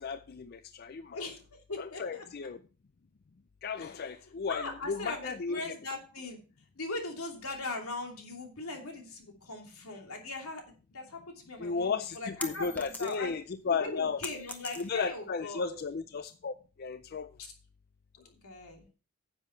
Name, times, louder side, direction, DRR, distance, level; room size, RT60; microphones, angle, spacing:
voice 1, 0.0-1.2 1.8-2.6 3.6-5.7 11.6-14.2 14.8-17.3, left 5 dB, 45° left, 12 dB, 0.4 m, -34 dB
voice 2, 1.7-2.2 3.8-3.9 4.5-6.4 6.8-10.6 10.9-13.3 13.7-15.8 18.4-18.8, left 2 dB, 85° left, 2 dB, 2.8 m, -40 dB
sound 1, 11.6-13.4 13.8-15.2, left 1 dB, 10° left, 0.9 m, -42 dB
10.0 x 7.6 x 4.4 m, 0.35 s
head